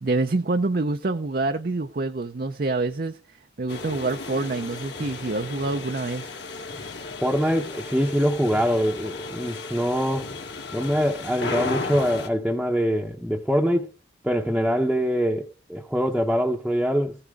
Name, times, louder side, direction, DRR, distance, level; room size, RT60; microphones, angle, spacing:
voice 1, 0.0-3.2 3.6-6.3, right 3 dB, 45° right, 0.6 m, -26 dB
sound 1, 3.7-12.3, left 3 dB, 60° left, 2.1 m, -34 dB
voice 2, 7.2-10.4 10.7-13.9 14.2-17.1, equal, ahead, 0.8 m, -24 dB
15.0 x 9.9 x 3.6 m
head